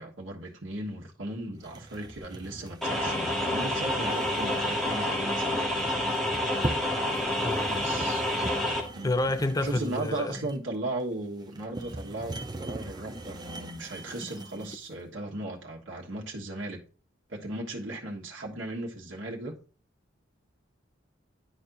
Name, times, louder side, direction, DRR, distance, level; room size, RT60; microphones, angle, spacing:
voice 1, 0.0-6.1 7.7-8.3 8.9-9.1 9.6-16.8 17.3-19.6, right 2 dB, 70° right, 1.4 m, -37 dB
sound 1, 1.6-14.9, right 1 dB, 20° right, 0.7 m, -40 dB
sound 2, 2.8-8.8, left 1 dB, ahead, 1.7 m, -28 dB
voice 2, 7.4-7.9 8.4-8.5 9.0-10.5, left 2 dB, 20° left, 0.6 m, -29 dB
11.0 x 4.4 x 2.6 m
head